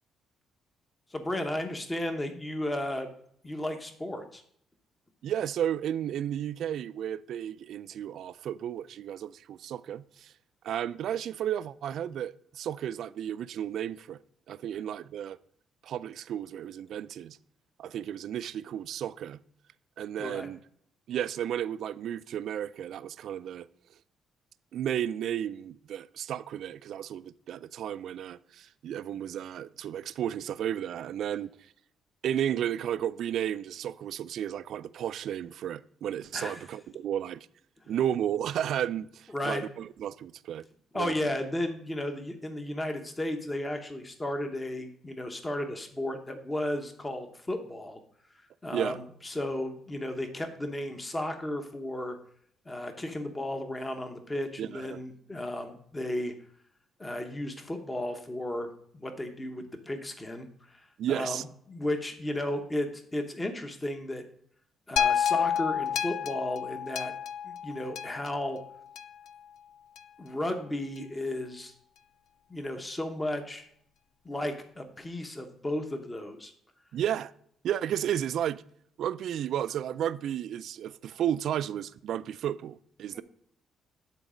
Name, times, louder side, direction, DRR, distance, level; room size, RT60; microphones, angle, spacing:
voice 1, 1.1-3.1 3.4-4.4 20.2-20.5 36.3-36.6 39.3-39.6 40.9-48.0 48.6-52.2 52.7-56.3 57.0-64.2 64.9-67.1 67.4-68.6 70.2-71.7 72.5-73.7 74.2-76.5 83.1-83.2, left 1 dB, 20° left, 1.0 m, -34 dB
voice 2, 5.2-10.3 10.6-14.2 14.5-15.4 15.8-17.4 17.8-19.4 20.0-20.6 21.1-23.7 24.7-31.5 32.2-37.5 37.9-40.7 40.9-41.1 48.7-49.0 54.6-55.0 61.0-61.4 76.9-77.3 77.6-78.6 79.0-83.2, right 10 dB, 70° right, 0.3 m, -33 dB
sound 1, 65.0-69.3 70.0-70.1, left 8 dB, 85° left, 0.4 m, -30 dB
9.8 x 4.1 x 5.0 m
cardioid pair, 90°, 0 cm